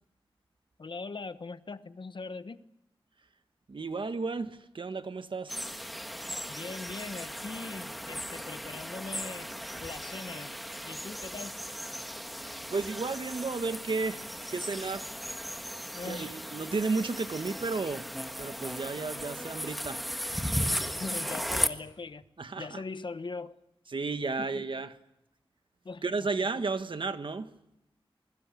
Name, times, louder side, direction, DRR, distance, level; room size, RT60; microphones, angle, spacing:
voice 1, 0.8-2.6 6.5-9.5 9.8-10.5 10.8-11.6 15.9-16.4 20.7-22.2 22.6-23.6 24.4-24.6 25.8-26.0, left 4 dB, 60° left, 1.1 m, -41 dB
voice 2, 3.7-5.6 12.7-15.1 16.0-18.1 18.4-20.0 22.4-22.8 23.9-24.9 26.0-27.5, right 4 dB, 60° right, 1.6 m, -33 dB
sound 1, 5.5-21.7, equal, ahead, 1.7 m, -36 dB
28.0 x 21.5 x 8.5 m
wide cardioid pair, 85°, 9 cm